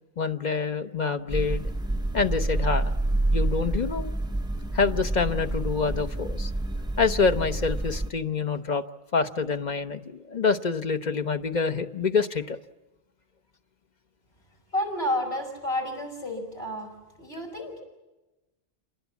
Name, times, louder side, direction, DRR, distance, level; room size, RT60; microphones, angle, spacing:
voice 1, 0.2-1.6 2.1-2.9 3.3-4.1 4.7-6.5 7.0-8.8 9.1-12.6, left 5 dB, 45° left, 8 dB, 1.0 m, -26 dB
sound 1, 1.3-8.1, right 2 dB, 5° right, 0.7 m, -28 dB
voice 2, 14.7-16.9 17.2-17.8, left 1 dB, 80° left, 1 dB, 6.0 m, -30 dB
28.0 x 19.5 x 8.3 m, 1.1 s
omnidirectional pair, 1.0 m